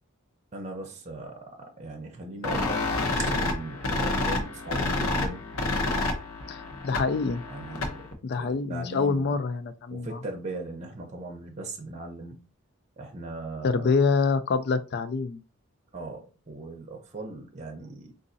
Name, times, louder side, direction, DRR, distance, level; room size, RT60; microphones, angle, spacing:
voice 1, 0.5-2.8 3.2-5.5 7.4-9.4 9.9-12.5 13.0-13.9 15.9-18.1, right 2 dB, 35° right, 0.7 m, -39 dB
sound 1, 2.4-8.1, left 2 dB, 90° left, 0.7 m, -29 dB
voice 2, 6.5-7.4 8.2-10.2 13.6-15.4, left 4 dB, 50° left, 0.4 m, -26 dB
3.9 x 2.5 x 2.6 m
head